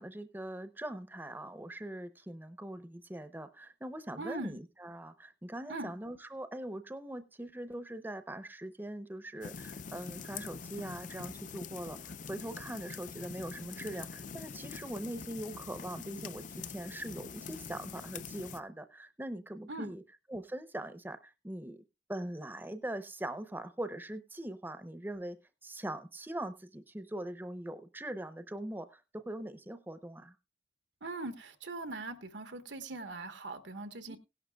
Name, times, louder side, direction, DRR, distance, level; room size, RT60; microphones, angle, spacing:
voice 1, 0.0-20.0 20.3-21.8 22.1-25.4 25.6-30.4 34.1-34.2, right 1 dB, 10° right, 0.6 m, -42 dB
voice 2, 4.2-4.6 5.7-5.9 19.7-19.9 31.0-34.2, right 2 dB, 85° right, 1.2 m, -41 dB
sound 1, 9.4-18.6, left 6 dB, 45° left, 0.5 m, -45 dB
17.0 x 11.5 x 2.3 m
head